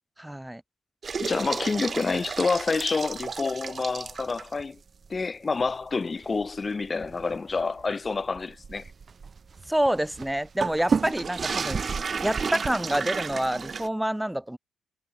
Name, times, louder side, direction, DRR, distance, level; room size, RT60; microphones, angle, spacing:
voice 1, 0.2-0.6 9.7-11.8 12.2-14.6, right 1 dB, 5° right, 5.6 m, -27 dB
sound 1, 1.0-4.6 5.0-5.2 5.6-5.7 6.2-13.9, right 5 dB, 40° right, 2.4 m, -32 dB
voice 2, 1.2-4.8 5.1-8.9, left 4 dB, 30° left, 3.0 m, -28 dB
cardioid pair, 90°, 0 cm